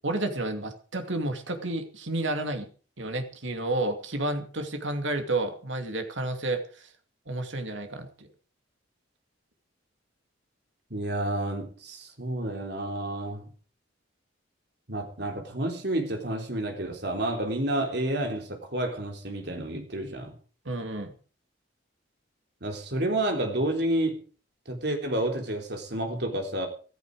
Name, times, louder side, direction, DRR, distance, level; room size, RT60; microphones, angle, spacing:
voice 1, 0.0-2.7 3.0-6.9 7.3-8.3 20.6-21.1, right 2 dB, 75° right, 6 dB, 2.6 m, -31 dB
voice 2, 10.9-13.5 14.9-20.3 22.6-24.2 24.7-26.7, right 1 dB, 55° right, 3 dB, 3.7 m, -30 dB
15.0 x 14.0 x 4.9 m, 0.39 s
head